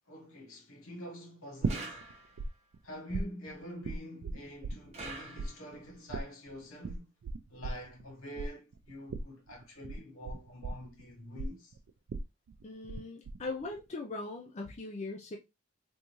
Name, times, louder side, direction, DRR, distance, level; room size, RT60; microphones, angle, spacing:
voice 1, 0.1-2.1 2.8-7.1 7.5-11.7, equal, 80° left, 1.3 m, -46 dB
sound 1, 1.6-2.5 2.7-5.1 5.4-13.0 13.3-13.8, right 3 dB, 75° right, 0.4 m, -37 dB
sound 2, 1.7-2.6 4.9-5.9, right 2 dB, 30° right, 0.9 m, -45 dB
voice 2, 12.6-15.4, left 3 dB, 30° left, 0.4 m, -40 dB
3.5 x 2.6 x 3.0 m
head